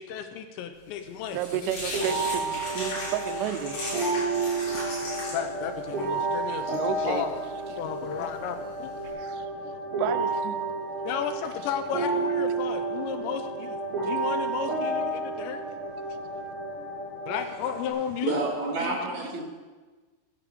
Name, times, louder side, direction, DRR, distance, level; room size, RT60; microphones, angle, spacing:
voice 1, 0.0-1.4 1.6-1.8 5.3-7.4 7.8-8.9 11.1-13.8 14.0-15.6 17.3-18.4, left 8 dB, 80° left, 8 dB, 2.9 m, -33 dB
sound 1, 0.8-9.1, left 1 dB, 55° left, 6.4 m, -38 dB
voice 2, 1.3-3.8 6.7-7.2 9.0-9.5 10.0-10.6 11.2-11.4, right 12 dB, 85° right, 11 dB, 3.2 m, -32 dB
sound 2, 1.9-17.9, right 3 dB, 30° right, 4.8 m, -31 dB
voice 3, 18.2-19.4, right 3 dB, 55° right, -1 dB, 2.2 m, -29 dB
10.0 x 9.5 x 7.8 m, 1.3 s
omnidirectional pair, 5.5 m